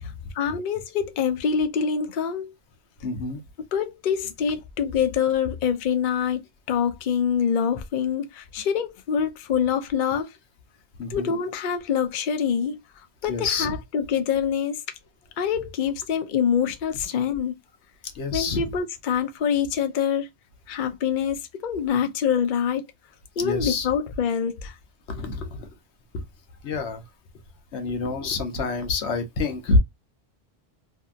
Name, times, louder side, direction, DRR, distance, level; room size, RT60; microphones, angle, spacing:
voice 1, 0.3-2.6 3.7-6.4 6.7-10.3 11.1-12.8 13.2-14.8 15.4-17.6 18.3-20.3 20.7-22.9 23.4-24.8, left 7 dB, 55° left, 0.6 m, -25 dB
voice 2, 3.0-3.4 11.0-11.3 13.3-13.7 18.1-18.6 23.4-23.9 25.1-25.7 26.1-26.2 26.6-27.0 27.7-29.8, left 3 dB, 80° left, 1.0 m, -27 dB
2.7 x 2.6 x 2.3 m
omnidirectional pair, 1.1 m